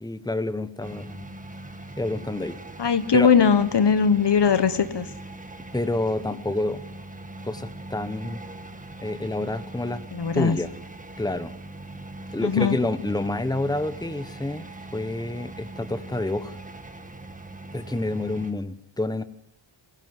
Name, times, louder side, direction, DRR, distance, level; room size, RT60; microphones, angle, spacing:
voice 1, 0.0-1.3 2.0-2.6 3.1-3.3 5.7-6.8 7.4-8.4 9.0-10.0 10.3-10.7 11.2-11.5 12.3-14.7 14.9-16.6 17.7-19.2, left 2 dB, 10° left, 12 dB, 1.2 m, -28 dB
sound 1, 0.8-18.5, right 2 dB, 15° right, 1.7 m, -41 dB
voice 2, 2.8-5.1 10.1-10.6 12.4-12.8, left 6 dB, 55° left, 13 dB, 1.2 m, -20 dB
22.0 x 17.0 x 9.7 m, 0.72 s
wide cardioid pair, 120°, 49 cm